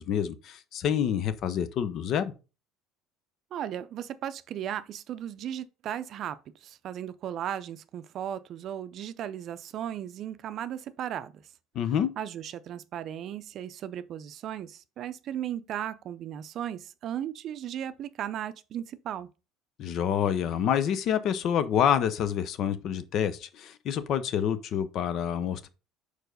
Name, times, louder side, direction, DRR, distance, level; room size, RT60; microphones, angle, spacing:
voice 1, 0.0-2.3 11.7-12.1 19.8-25.7, left 9 dB, 55° left, 0.8 m, -27 dB
voice 2, 3.5-11.4 12.2-19.3, right 10 dB, 55° right, 0.5 m, -36 dB
4.9 x 4.5 x 5.2 m
supercardioid pair, 90°, 0 cm